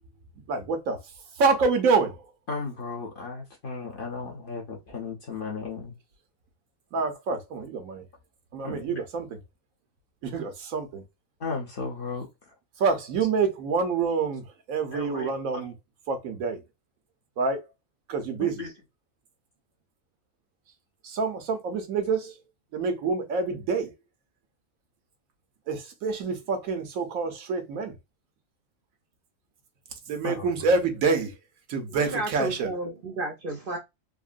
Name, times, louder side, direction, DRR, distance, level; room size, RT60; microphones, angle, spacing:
voice 1, 0.4-1.0 1.4-2.3 6.9-8.0 8.5-9.4 10.2-11.0 12.8-15.7 16.1-16.6 17.4-17.6 18.1-18.6 21.0-22.3 22.7-23.9 25.7-27.9 30.1-31.3 31.7-32.7, right 4 dB, 85° right, 1.2 m, -27 dB
voice 2, 2.5-5.9 8.6-9.0 11.4-12.5 14.9-15.7 18.4-18.7 30.2-30.5, left 4 dB, 50° left, 0.8 m, -35 dB
voice 3, 31.9-33.8, right 2 dB, 55° right, 0.6 m, -32 dB
3.6 x 2.1 x 2.4 m
omnidirectional pair, 1.4 m